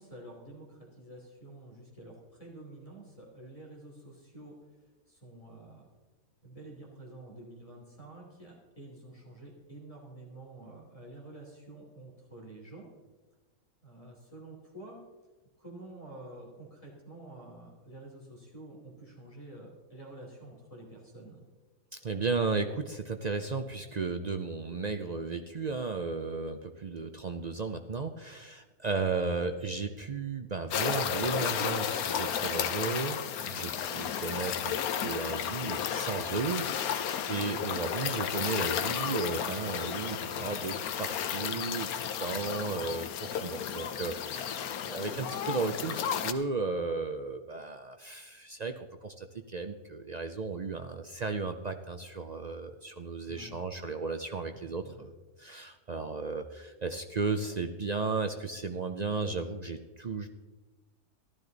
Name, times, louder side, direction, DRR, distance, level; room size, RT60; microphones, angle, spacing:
voice 1, 0.0-4.5 5.1-5.9 6.4-12.9 13.8-15.0 15.6-21.4 33.3-33.7 53.3-53.6 54.6-55.1, right 2 dB, 25° left, -2 dB, 3.0 m, -49 dB
voice 2, 21.9-37.0 37.3-41.9 42.2-55.1 55.4-60.3, right 4 dB, 55° right, 6 dB, 0.4 m, -34 dB
sound 1, 30.7-46.3, left 8 dB, 90° left, 1.2 m, -33 dB
14.0 x 12.0 x 4.0 m, 1.2 s
omnidirectional pair, 1.5 m